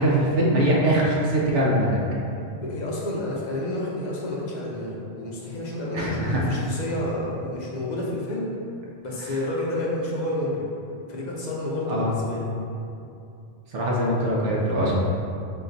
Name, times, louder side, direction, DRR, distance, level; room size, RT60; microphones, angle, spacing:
voice 1, 0.0-2.0 5.9-6.4 11.9-12.2 13.7-15.0, right 1 dB, 85° right, -4 dB, 1.0 m, -22 dB
voice 2, 2.6-8.5 9.0-10.7 11.1-12.5, left 1 dB, 50° left, -4 dB, 0.6 m, -30 dB
4.3 x 2.3 x 3.8 m, 2.6 s
omnidirectional pair, 1.2 m